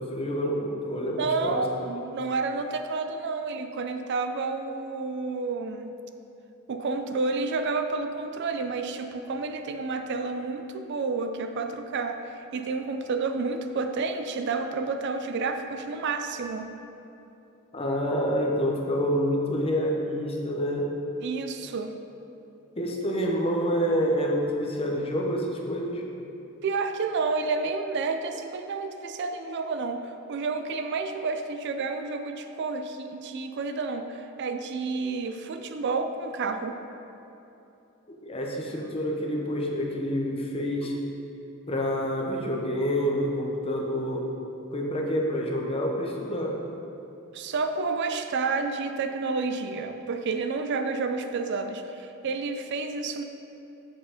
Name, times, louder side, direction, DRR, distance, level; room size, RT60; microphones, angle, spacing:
voice 1, 0.0-1.7 17.7-20.9 22.8-26.0 38.1-41.0 41.7-44.3 44.7-46.6, equal, 25° left, 0 dB, 0.8 m, -28 dB
voice 2, 1.2-5.9 6.7-16.7 21.2-22.0 26.6-36.8 47.3-53.2, right 4 dB, 55° right, 7 dB, 0.4 m, -30 dB
7.6 x 4.7 x 5.0 m, 2.9 s
head